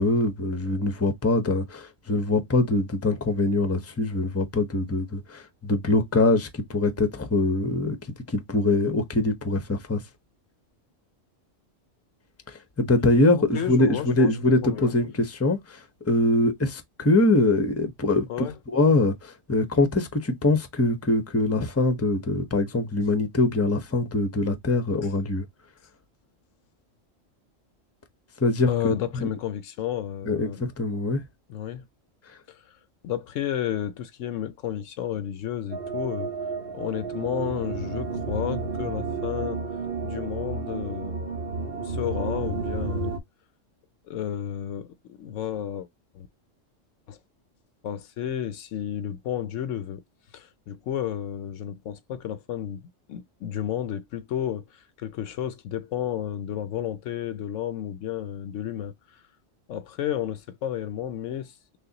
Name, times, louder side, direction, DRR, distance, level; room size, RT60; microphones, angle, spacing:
voice 1, 0.0-8.0 8.3-10.0 12.5-25.4 28.4-29.3 30.3-31.2, left 2 dB, 15° left, 0.7 m, -23 dB
voice 2, 13.3-14.3 14.6-14.9 18.3-18.5 28.7-30.6 31.5-31.9 32.5-32.6 33.0-36.3 36.7-39.6 40.0-41.2 41.8-43.1 44.1-45.9 46.1-46.3 47.1-47.2 47.8-50.0 50.3-52.8 53.1-58.9 59.7-61.5, left 10 dB, 75° left, 1.0 m, -32 dB
sound 1, 35.7-43.2, right 4 dB, 50° right, 1.3 m, -31 dB
6.3 x 2.2 x 2.8 m
omnidirectional pair, 1.3 m